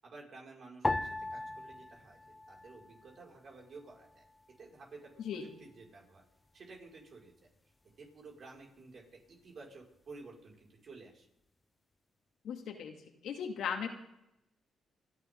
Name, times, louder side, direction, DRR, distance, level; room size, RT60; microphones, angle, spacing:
voice 1, 0.0-4.2 4.6-6.2 6.5-7.5 8.0-9.0 9.3-11.3, right 3 dB, 55° right, -2 dB, 5.9 m, -53 dB
sound 1, 0.8-3.4 3.6-4.5 5.2-5.6, left 2 dB, 20° left, 0.9 m, -38 dB
voice 2, 12.4-13.0 13.2-13.9, left 7 dB, 80° left, 3 dB, 2.6 m, -37 dB
29.0 x 11.5 x 3.9 m, 0.83 s
cardioid pair, 75°, 0 cm